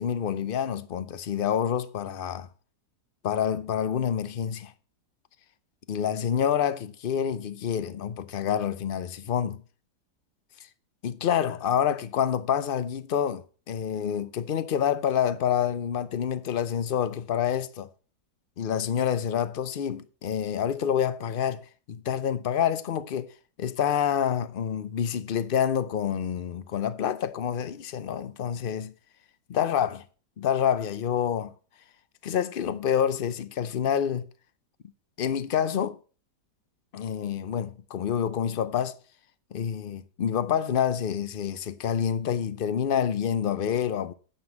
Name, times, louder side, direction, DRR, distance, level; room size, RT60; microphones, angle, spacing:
voice 1, 0.0-2.5 3.2-4.7 5.9-9.6 11.0-17.9 18.6-23.3 23.6-28.9 29.5-30.0 30.4-31.5 32.2-34.2 35.2-36.0 36.9-39.0 39.5-44.1, left 8 dB, 65° left, 0.5 m, -27 dB
9.5 x 7.0 x 7.1 m
omnidirectional pair, 1.8 m